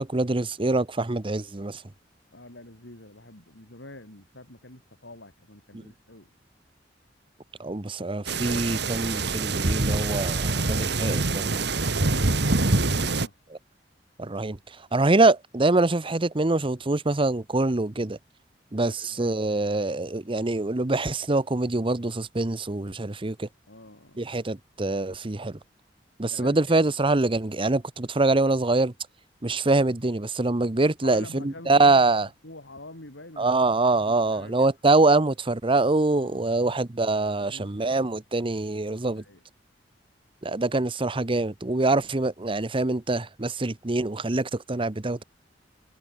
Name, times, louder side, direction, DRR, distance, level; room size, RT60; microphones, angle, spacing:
voice 1, 0.0-1.8 5.7-5.8 7.6-11.6 14.2-18.2 18.7-23.5 24.2-25.6 26.2-28.9 29.4-32.3 33.4-39.2 40.4-45.2, right 2 dB, 30° right, 0.9 m, -24 dB
voice 2, 2.3-6.3 12.0-13.4 18.7-19.6 23.7-24.2 26.3-26.6 31.0-32.1 32.4-33.5 33.9-35.0 36.1-36.6 37.4-38.0 39.2-39.4, left 2 dB, 85° left, 6.3 m, -46 dB
sound 1, 8.3-13.3, right 3 dB, 65° right, 2.0 m, -25 dB
head